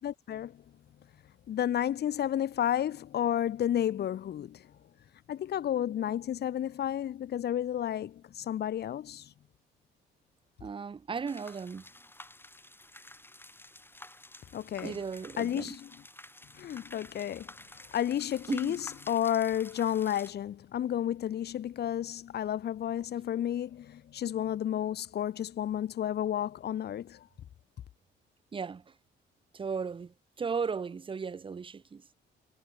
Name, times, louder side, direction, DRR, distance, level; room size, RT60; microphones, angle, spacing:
voice 1, 0.0-0.6 1.5-4.6 5.3-9.3 14.5-15.0 15.4-15.9 16.6-17.5 17.9-27.3, left 10 dB, 55° left, 0.8 m, -31 dB
voice 2, 10.6-11.8 14.8-15.8 18.5-18.8 28.5-28.8 29.5-32.0, right 5 dB, 25° right, 0.7 m, -36 dB
sound 1, 11.3-20.3, left 1 dB, 10° left, 3.9 m, -51 dB
cardioid pair, 90°, 20 cm